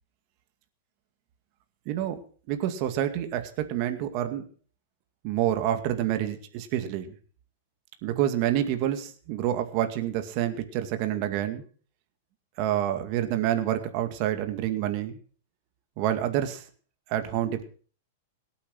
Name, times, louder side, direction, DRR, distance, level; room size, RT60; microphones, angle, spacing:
voice 1, 1.9-2.2 2.5-4.5 5.2-7.1 8.0-11.6 12.6-15.2 16.0-16.6 17.1-17.6, right 11 dB, 45° right, 8 dB, 2.2 m, -28 dB
18.0 x 8.6 x 6.4 m, 0.41 s
hypercardioid pair, 135°, 0 cm